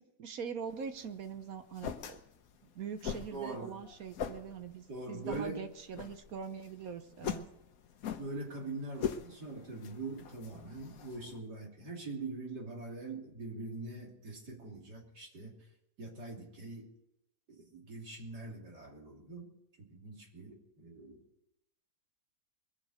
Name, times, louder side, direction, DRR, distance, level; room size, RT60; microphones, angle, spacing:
voice 1, 0.0-2.2 2.7-7.5, right 7 dB, 65° right, 9 dB, 1.3 m, -43 dB
sound 1, 0.7-11.4, left 8 dB, 65° left, 1.3 m, -43 dB
voice 2, 3.3-3.8 4.9-5.7 8.2-15.6 16.0-16.9 17.5-19.5 19.8-21.2, right 2 dB, 80° right, -1 dB, 3.7 m, -43 dB
22.5 x 7.6 x 6.5 m, 0.81 s
omnidirectional pair, 1.7 m